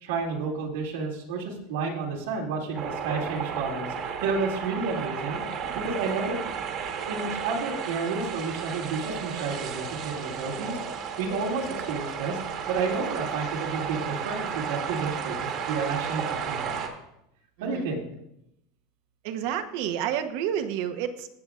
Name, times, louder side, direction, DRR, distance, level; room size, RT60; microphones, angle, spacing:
voice 1, 0.0-6.4 7.1-12.4 12.7-16.8 17.6-18.1, right 4 dB, 90° right, -1 dB, 2.4 m, -31 dB
Drainage Pipe Final rinse, 2.7-16.9, right 7 dB, 45° right, 1.4 m, -33 dB
voice 2, 17.6-17.9 19.2-21.3, right 9 dB, 65° right, 8 dB, 0.9 m, -30 dB
15.5 x 7.9 x 2.5 m, 0.81 s
supercardioid pair, 140°, 0 cm